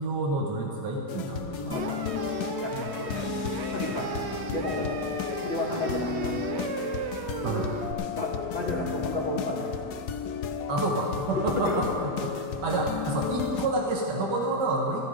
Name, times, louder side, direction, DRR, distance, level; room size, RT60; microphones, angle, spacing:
voice 1, 0.0-1.9 4.8-4.9 7.4-7.7 10.7-15.1, right 2 dB, 90° right, -1 dB, 1.8 m, -29 dB
sound 1, 1.1-13.7, left 8 dB, 70° left, 1.2 m, -33 dB
voice 2, 1.6-2.2 2.6-3.3 3.7-4.1 4.5-4.8 5.4-6.7 8.1-9.9 11.3-11.8, left 1 dB, 25° left, -4 dB, 2.4 m, -32 dB
sound 2, 1.7-7.9, right 6 dB, 60° right, 0.7 m, -36 dB
14.0 x 14.0 x 5.0 m, 2.6 s
omnidirectional pair, 1.8 m